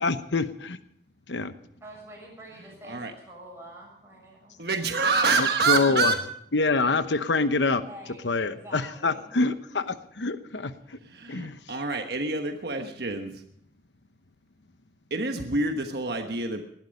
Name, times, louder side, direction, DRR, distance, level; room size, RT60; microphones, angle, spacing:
voice 1, 0.0-0.8 1.3-1.5 5.4-6.1 6.5-7.8 8.2-10.7 11.3-11.5, left 3 dB, 90° left, 11 dB, 1.0 m, -26 dB
voice 2, 1.8-4.6 7.7-9.3, right 1 dB, 15° right, -3 dB, 7.2 m, -46 dB
voice 3, 4.6-6.2 11.0-13.4 15.1-16.6, right 3 dB, 65° right, 5 dB, 1.3 m, -27 dB
19.5 x 12.5 x 5.3 m, 0.70 s
head